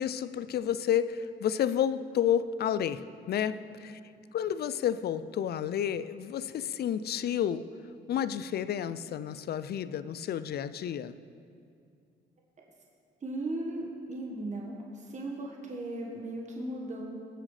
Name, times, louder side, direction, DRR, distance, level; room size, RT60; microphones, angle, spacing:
voice 1, 0.0-4.0 4.3-7.7 8.1-11.2, left 9 dB, 55° left, 14 dB, 0.4 m, -30 dB
voice 2, 13.2-17.0, right 1 dB, 35° right, -2 dB, 1.5 m, -37 dB
18.5 x 7.6 x 3.3 m, 2.5 s
cardioid pair, 90°, 20 cm